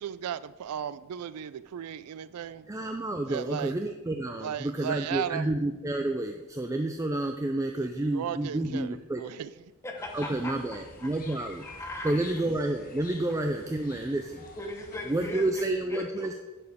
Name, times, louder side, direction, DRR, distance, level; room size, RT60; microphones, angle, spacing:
voice 1, 0.0-2.7 3.3-3.7 4.4-5.5 7.8-9.5, right 8 dB, 90° right, 16 dB, 0.3 m, -36 dB
voice 2, 2.7-9.2 10.1-11.6 12.0-14.4 15.1-16.3, right 2 dB, 15° right, 5 dB, 0.4 m, -30 dB
voice 3, 9.8-10.5 11.0-11.4 11.6-12.1 14.6-15.6 15.9-16.3, left 1 dB, 15° left, 1 dB, 1.2 m, -38 dB
sound 1, 10.0-15.8, left 3 dB, 40° left, 1.1 m, -49 dB
10.5 x 6.8 x 3.6 m, 1.1 s
head